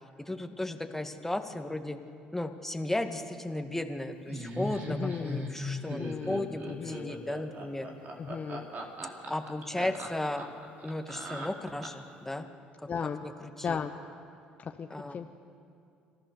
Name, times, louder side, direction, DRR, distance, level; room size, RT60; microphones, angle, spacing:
voice 1, 0.2-2.0 2.3-7.9 9.3-10.5 10.8-12.5 13.2-13.8 14.9-15.2, left 1 dB, 10° left, 6 dB, 1.9 m, -35 dB
Laughter, 4.3-12.1, equal, 50° right, 3.7 m, -38 dB
voice 2, 4.9-5.5 5.8-6.4 6.7-7.1 8.2-8.7 12.9-13.2 13.6-13.9 14.6-15.3, left 6 dB, 40° left, 6 dB, 1.0 m, -36 dB
26.0 x 15.0 x 6.9 m, 2.5 s
hypercardioid pair, 65°, 4 cm